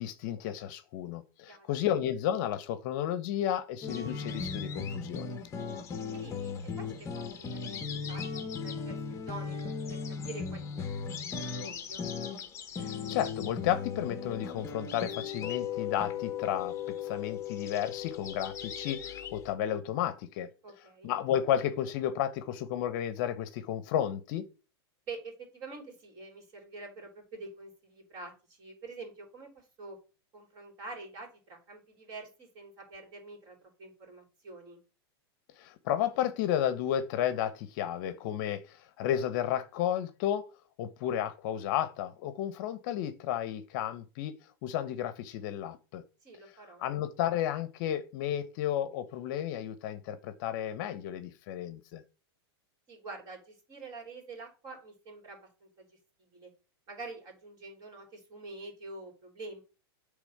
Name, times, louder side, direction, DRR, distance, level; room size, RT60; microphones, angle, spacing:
voice 1, 0.0-5.3 12.8-20.5 21.0-24.5 35.6-40.5 40.8-44.3 44.6-46.0 46.8-52.0, left 10 dB, 50° left, 0.9 m, -32 dB
sound 1, 3.8-19.5, left 6 dB, 20° left, 1.0 m, -37 dB
voice 2, 6.1-9.6 9.9-10.9 11.2-12.1 20.6-21.1 25.1-30.0 30.3-34.8 46.2-46.9 52.9-56.0 56.3-56.5 56.9-59.6, right 3 dB, 30° right, 3.6 m, -46 dB
8.3 x 3.5 x 6.5 m
supercardioid pair, 145°, 13 cm